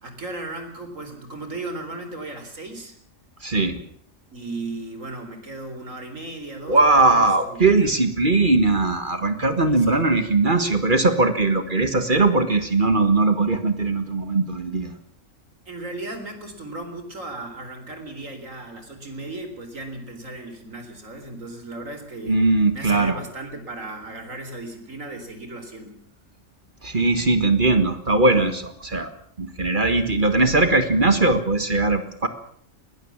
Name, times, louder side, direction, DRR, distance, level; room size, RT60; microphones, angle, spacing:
voice 1, 0.0-2.9 4.3-7.9 9.6-10.1 15.7-22.4 22.7-26.0, right 2 dB, 85° right, 7 dB, 4.3 m, -36 dB
voice 2, 3.4-3.8 6.7-14.9 22.3-23.2 26.8-29.1 29.4-32.3, right 3 dB, 40° right, 9 dB, 1.8 m, -20 dB
21.0 x 19.5 x 7.3 m, 0.63 s
omnidirectional pair, 1.3 m